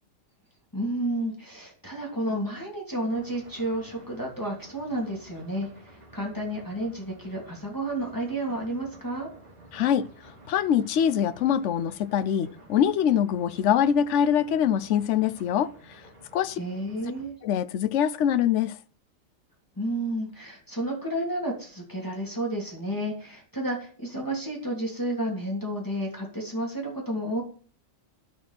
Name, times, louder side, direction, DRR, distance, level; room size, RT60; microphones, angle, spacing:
voice 1, 0.7-9.3 16.6-17.3 19.8-27.4, right 1 dB, 15° left, 2.9 m, -31 dB
sound 1, 3.1-17.3, right 1 dB, 30° right, 5.4 m, -51 dB
voice 2, 9.7-10.1 10.5-15.7 16.3-16.6 17.4-18.8, left 9 dB, 65° left, 1.0 m, -24 dB
11.5 x 6.6 x 5.9 m
omnidirectional pair, 1.4 m